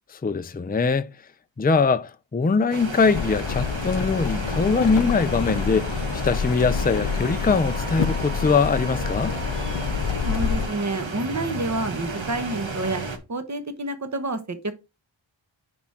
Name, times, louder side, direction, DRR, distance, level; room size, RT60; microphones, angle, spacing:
voice 1, 0.2-1.1 1.6-9.4, left 4 dB, 20° left, 0.5 m, -22 dB
sound 1, 2.7-13.2, right 3 dB, 75° right, 1.6 m, -33 dB
sound 2, 3.1-10.7, left 7 dB, 65° left, 0.6 m, -28 dB
Wind instrument woodwind instrument, 6.7-10.6, right 5 dB, 50° right, 3.7 m, -42 dB
voice 2, 10.2-13.0 13.3-14.7, right 2 dB, 35° right, 1.2 m, -28 dB
9.8 x 3.7 x 4.3 m
wide cardioid pair, 65°, 46 cm